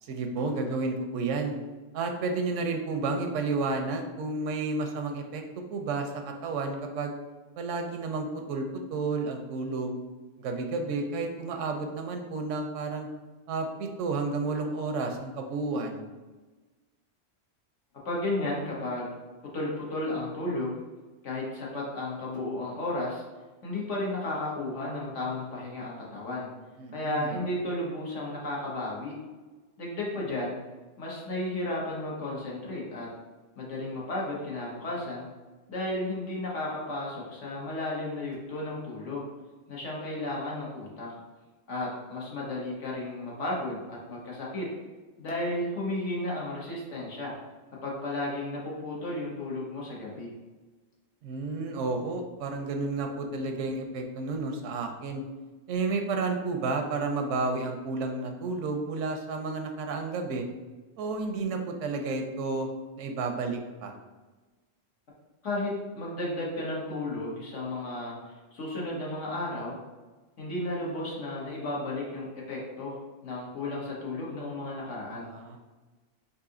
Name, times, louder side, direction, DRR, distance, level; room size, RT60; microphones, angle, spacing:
voice 1, 0.0-1.6 1.9-5.4 5.7-7.1 7.6-8.7 8.9-10.0 10.4-13.1 13.5-16.1 26.8-27.4 51.2-55.2 55.7-60.4 61.0-62.7 63.0-63.9 75.1-75.6, right 3 dB, 80° right, 4 dB, 0.9 m, -31 dB
voice 2, 18.0-19.1 19.5-20.8 21.2-23.2 23.6-26.5 26.9-29.1 29.8-30.6 31.0-33.1 33.6-35.2 35.7-39.2 39.7-41.1 41.7-44.7 45.2-47.3 47.8-50.3 65.4-69.8 70.4-73.0 73.2-75.3, left 1 dB, 75° left, -4 dB, 1.5 m, -33 dB
4.0 x 2.7 x 3.7 m, 1.2 s
omnidirectional pair, 1.3 m